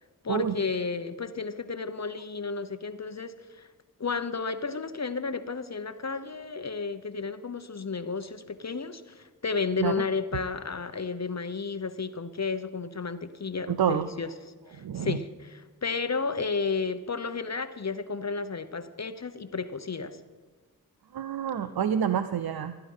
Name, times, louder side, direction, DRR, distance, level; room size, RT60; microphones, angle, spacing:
voice 1, 0.2-3.7 4.0-14.3 14.7-20.2, left 4 dB, 45° left, 11 dB, 0.9 m, -32 dB
voice 2, 13.7-14.1 14.8-15.2 21.1-22.8, right 8 dB, 80° right, 11 dB, 0.6 m, -28 dB
17.5 x 10.0 x 5.5 m, 1.4 s
cardioid pair, 45°, 36 cm